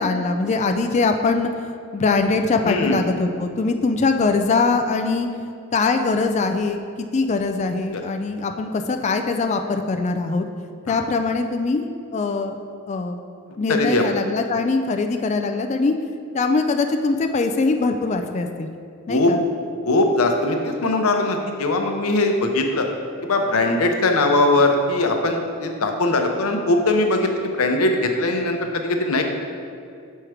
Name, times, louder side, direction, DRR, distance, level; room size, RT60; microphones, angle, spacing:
voice 1, 0.0-5.3 5.7-6.8 7.1-10.5 10.9-12.6 12.9-13.2 13.6-16.0 16.3-18.7 19.1-19.4, left 3 dB, 30° left, 6 dB, 0.3 m, -22 dB
voice 2, 2.6-3.0 7.9-8.0 10.9-11.0 13.7-14.0 19.1-19.3 19.8-22.9 23.2-29.2, left 2 dB, 90° left, 4 dB, 0.7 m, -20 dB
6.4 x 4.5 x 4.8 m, 2.3 s
head